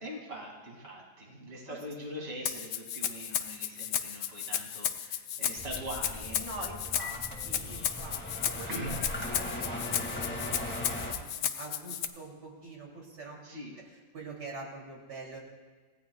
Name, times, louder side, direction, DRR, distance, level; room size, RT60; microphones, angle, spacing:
voice 1, 0.0-6.4 8.7-9.0 13.4-13.8, right 1 dB, 35° right, -1 dB, 2.8 m, -42 dB
Rattle (instrument), 2.5-12.1, left 9 dB, 75° left, 1.3 m, -34 dB
sound 1, 5.6-11.1, left 1 dB, 5° left, 2.0 m, -39 dB
voice 2, 6.3-9.0 9.3-13.4 13.8-15.4, right 2 dB, 85° right, -2 dB, 3.7 m, -45 dB
29.0 x 16.5 x 2.4 m, 1.5 s
omnidirectional pair, 1.8 m